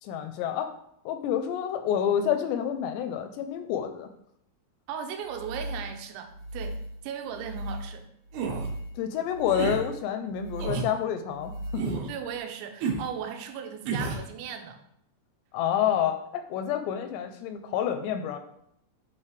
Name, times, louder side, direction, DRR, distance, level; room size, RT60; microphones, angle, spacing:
voice 1, 0.0-0.7 1.1-4.1 9.0-12.1 15.5-18.4, left 9 dB, 85° left, 8 dB, 2.7 m, -28 dB
voice 2, 4.9-6.8 7.0-8.1 12.1-14.8, right 7 dB, 90° right, 6 dB, 3.1 m, -37 dB
sound 1, 5.2-12.4, equal, 35° right, 3.1 m, -38 dB
sound 2, 8.3-8.7 9.5-9.8 10.6-10.9 11.8-12.1 12.8-13.1 13.9-14.3, right 5 dB, 70° right, 2.7 m, -30 dB
8.8 x 6.4 x 3.3 m, 0.73 s
omnidirectional pair, 5.2 m